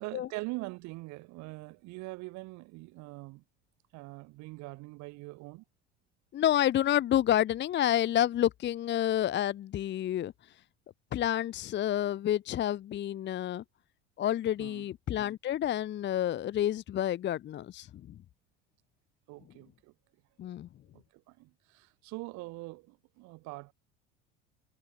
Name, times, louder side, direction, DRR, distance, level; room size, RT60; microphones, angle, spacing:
voice 1, 0.0-3.4 3.9-5.6 14.6-14.9 19.3-19.9 20.9-23.7, right 23 dB, 65° right, 3.1 m, -43 dB
voice 2, 6.3-10.3 11.1-13.6 14.2-18.2 20.4-20.7, left 11 dB, 35° left, 0.7 m, -29 dB
hypercardioid pair, 65°, 31 cm